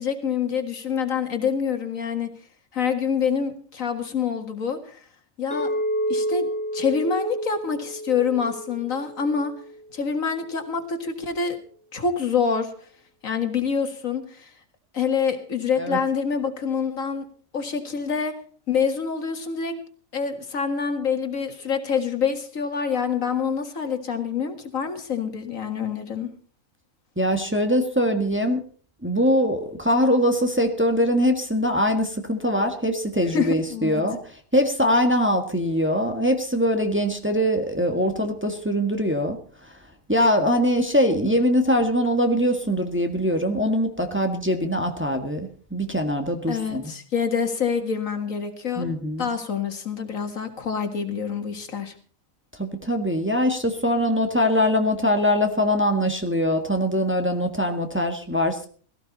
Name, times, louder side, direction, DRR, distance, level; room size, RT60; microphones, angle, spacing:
voice 1, 0.0-2.3 2.7-5.0 5.4-5.7 6.1-9.5 9.9-11.6 11.9-12.7 13.2-14.5 14.9-17.3 17.5-18.3 18.7-19.7 20.1-26.3 33.3-34.0 46.5-48.9 49.2-51.9, left 6 dB, 75° left, 7 dB, 2.2 m, -26 dB
Chink clink, 5.5-9.8, equal, 70° right, 6.6 m, -29 dB
voice 2, 27.2-28.6 29.0-34.2 34.5-39.4 40.1-46.9 48.7-49.3 52.6-58.7, equal, 10° right, 4 dB, 1.7 m, -22 dB
17.0 x 15.0 x 4.1 m, 0.44 s
omnidirectional pair, 1.4 m